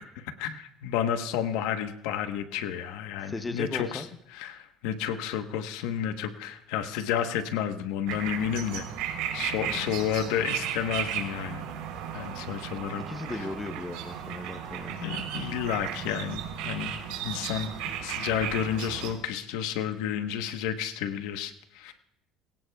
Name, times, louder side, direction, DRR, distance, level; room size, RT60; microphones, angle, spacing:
voice 1, 0.0-4.0 4.3-8.8 9.3-11.7 12.1-13.0 13.3-13.4 15.0-16.9 17.2-17.7 18.0-21.9, left 9 dB, 85° left, 8 dB, 1.1 m, -31 dB
voice 2, 3.2-4.1 9.6-10.0 13.1-15.0, left 2 dB, 10° left, 9 dB, 0.7 m, -37 dB
sound 1, 8.1-19.1, right 9 dB, 85° right, 3.5 m, -35 dB
22.5 x 17.0 x 2.3 m, 0.84 s
cardioid pair, 150°, 0 cm